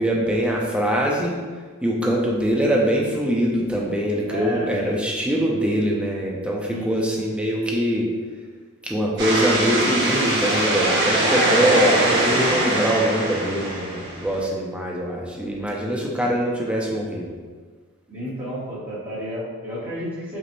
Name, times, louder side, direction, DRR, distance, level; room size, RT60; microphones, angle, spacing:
voice 1, 0.0-1.4 1.8-8.1 8.8-17.3, equal, 5° right, -2 dB, 0.3 m, -23 dB
voice 2, 4.2-5.0 6.6-7.0 11.3-11.8 18.1-20.4, equal, 25° right, -12 dB, 0.9 m, -32 dB
sound 1, 9.2-14.4, right 1 dB, 50° right, 1.2 m, -22 dB
5.2 x 2.0 x 2.9 m, 1.5 s
head